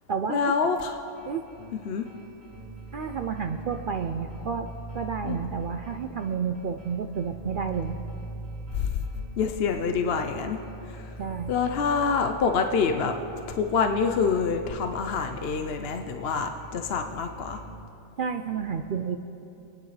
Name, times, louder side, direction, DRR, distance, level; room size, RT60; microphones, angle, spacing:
voice 1, 0.3-1.0 1.8-2.1 5.2-5.4 8.7-9.0 9.4-10.6 10.9-11.1 11.5-13.1 13.5-17.6, left 5 dB, 55° left, 6 dB, 0.7 m, -26 dB
sound 1, 1.1-17.8, right 2 dB, 50° right, 1.5 m, -42 dB
voice 2, 2.9-4.7 4.9-8.0 11.2-11.5 18.2-19.2, right 6 dB, 75° right, 6 dB, 0.4 m, -30 dB
26.5 x 9.5 x 3.3 m, 2.8 s
omnidirectional pair, 1.5 m